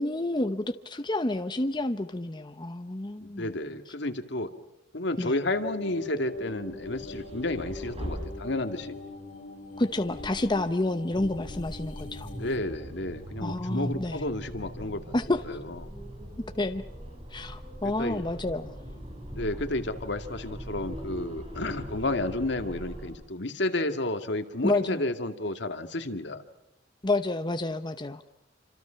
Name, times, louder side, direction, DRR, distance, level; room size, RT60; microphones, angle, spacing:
voice 1, 0.0-3.5 5.2-5.4 9.8-12.3 13.4-14.2 15.1-15.4 16.6-16.8 17.3-18.7 24.6-25.0 27.0-28.3, left 2 dB, 25° left, 8 dB, 0.9 m, -29 dB
voice 2, 3.2-4.5 4.9-9.0 12.3-15.0 15.5-15.8 18.0-18.2 19.3-26.4, left 2 dB, 65° left, 7 dB, 2.3 m, -31 dB
sound 1, 5.4-12.6, left 3 dB, 45° left, 7.7 m, -42 dB
sound 2, 6.4-9.0 9.7-23.1, equal, 30° right, 7.3 m, -41 dB
28.5 x 26.5 x 5.8 m, 0.88 s
head